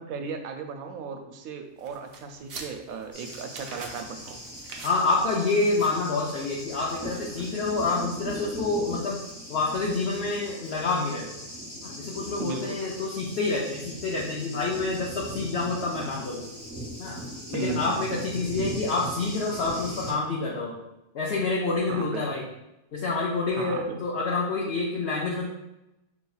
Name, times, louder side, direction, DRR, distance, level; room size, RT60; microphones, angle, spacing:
voice 1, 0.0-4.4 12.4-12.8 17.5-18.0 21.9-22.3 23.6-24.0, right 5 dB, 85° right, 5 dB, 1.0 m, -36 dB
sound 1, 1.8-8.0, right 3 dB, 60° right, 0.7 m, -46 dB
Thunder, 3.1-20.1, equal, 20° left, 1.0 m, -39 dB
voice 2, 4.8-9.2 9.5-11.3 11.8-16.5 17.0-17.2 17.5-20.8 21.1-22.4 22.9-25.5, left 3 dB, 60° left, -3 dB, 0.7 m, -27 dB
5.3 x 2.9 x 2.3 m, 0.90 s
omnidirectional pair, 1.5 m